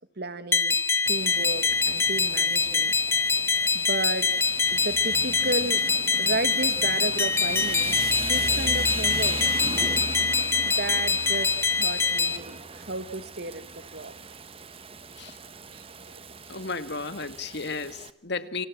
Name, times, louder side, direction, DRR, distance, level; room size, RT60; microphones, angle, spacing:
voice 1, 0.2-0.7 1.1-2.9 3.7-4.3 4.7-5.8 6.2-9.4 10.6-13.7 13.9-14.2 15.7-16.3, right 2 dB, 60° right, 11 dB, 2.1 m, -33 dB
sound 1, 0.5-12.4, left 4 dB, 15° left, 1.5 m, -24 dB
Rain, 1.0-18.1, right 3 dB, 30° right, 1.4 m, -38 dB
voice 2, 16.5-18.7, left 4 dB, 65° left, 11 dB, 2.0 m, -33 dB
29.5 x 27.0 x 6.2 m, 0.76 s
head